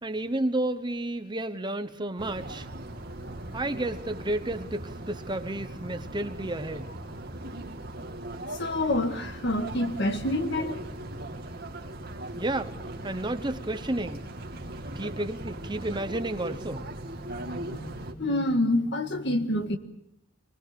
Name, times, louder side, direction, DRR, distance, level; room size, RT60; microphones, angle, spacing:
voice 1, 0.0-2.7 3.5-6.9 12.4-12.8 13.0-14.3 14.9-16.9, right 1 dB, 25° right, 1.0 m, -31 dB
sound 1, 2.2-18.1, right 1 dB, 50° right, 2.3 m, -39 dB
voice 2, 8.6-10.8 17.4-19.8, left 1 dB, 60° left, 1.8 m, -27 dB
25.5 x 20.5 x 6.9 m
head